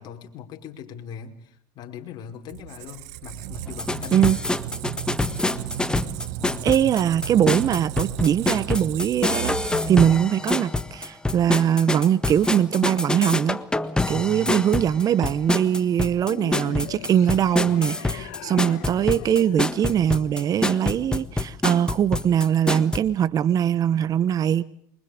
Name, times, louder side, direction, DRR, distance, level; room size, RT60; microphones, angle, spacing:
voice 1, 0.0-4.4 6.4-7.0 14.0-14.6, left 6 dB, 50° left, 4 dB, 5.1 m, -39 dB
Squeak, 2.5-10.3, right 14 dB, 75° right, 1.4 m, -35 dB
sound 1, 3.7-23.0, left 2 dB, 10° left, 1.4 m, -26 dB
voice 2, 6.6-13.6 14.1-24.6, right 9 dB, 40° right, 18 dB, 1.1 m, -22 dB
sound 2, 16.2-20.7, left 16 dB, 75° left, 1.4 m, -40 dB
28.0 x 24.5 x 5.2 m, 0.66 s
hypercardioid pair, 95°, 10 cm